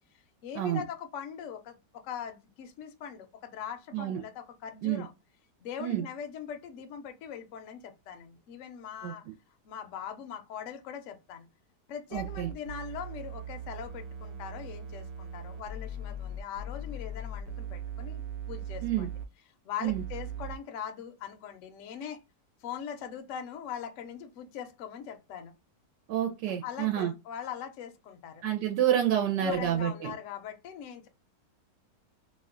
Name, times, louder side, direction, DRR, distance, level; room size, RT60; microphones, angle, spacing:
voice 1, 0.4-5.1 5.6-9.3 9.6-11.5 11.9-19.1 19.6-22.2 22.6-25.5 26.5-28.4 29.4-31.1, left 8 dB, 70° left, 0.7 m, -41 dB
sound 1, 12.1-19.3 19.8-20.6, right 3 dB, 70° right, 0.9 m, -39 dB
voice 2, 12.1-12.5 18.8-19.1 19.8-20.0 26.1-27.1 28.4-30.1, right 11 dB, 85° right, 1.2 m, -28 dB
2.9 x 2.1 x 3.6 m
omnidirectional pair, 1.9 m